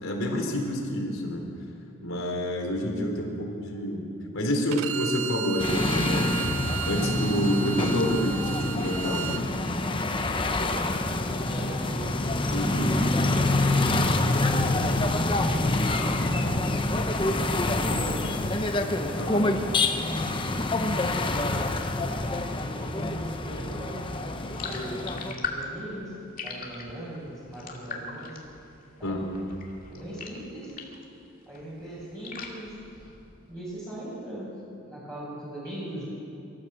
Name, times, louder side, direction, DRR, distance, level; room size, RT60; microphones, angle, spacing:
voice 1, 0.0-1.5 2.0-4.0 4.3-6.5 6.8-9.4 12.5-13.0 19.2-19.4 29.0-29.4, left 1 dB, 70° left, 1 dB, 3.9 m, -28 dB
Bowed string instrument, 4.7-9.4, right 9 dB, 70° right, 0.9 m, -34 dB
sound 1, 5.6-25.3, left 2 dB, 20° left, 0.9 m, -26 dB
voice 2, 10.2-12.6 13.2-18.3 19.0-21.7 22.5-26.1 26.4-28.4 29.0-29.2 29.9-30.7 31.5-32.7 33.5-34.5 34.9-36.0, right 1 dB, 15° right, -10 dB, 5.9 m, -39 dB
sound 2, 24.5-31.1 31.4-33.5, left 4 dB, 40° left, 2.3 m, -40 dB
24.5 x 14.0 x 7.6 m, 2.7 s
head